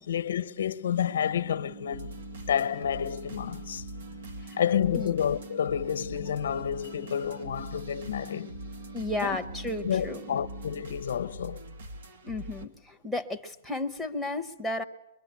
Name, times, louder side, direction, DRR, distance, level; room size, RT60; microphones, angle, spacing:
voice 1, 0.1-3.9 4.6-8.6 9.2-9.4 9.8-11.6, left 9 dB, 85° left, 1.0 m, -30 dB
sound 1, 0.8-10.8, right 4 dB, 30° right, 1.3 m, -46 dB
sound 2, 1.9-12.7, equal, 80° right, 2.1 m, -44 dB
voice 2, 8.9-10.4 12.2-14.8, left 2 dB, ahead, 1.0 m, -33 dB
23.5 x 22.5 x 9.5 m
hypercardioid pair, 165°, 0 cm